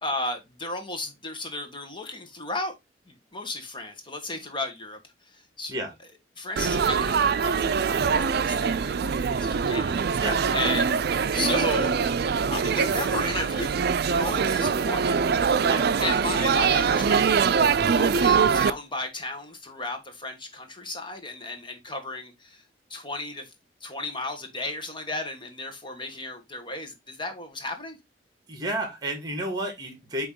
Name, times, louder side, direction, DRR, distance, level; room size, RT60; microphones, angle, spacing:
voice 1, 0.0-2.7 3.1-5.0 5.6-5.7 6.4-10.2 10.5-11.0 11.3-11.9 12.5-13.8 14.1-15.3 16.0-22.6 22.9-23.5 23.8-28.0, left 2 dB, 30° left, 1.3 m, -34 dB
Laughter / Chatter / Crowd, 6.6-18.7, right 6 dB, 60° right, 0.4 m, -23 dB
voice 2, 10.2-10.7 15.7-15.9 28.5-30.3, right 1 dB, 25° right, 1.8 m, -31 dB
8.7 x 3.0 x 3.7 m
head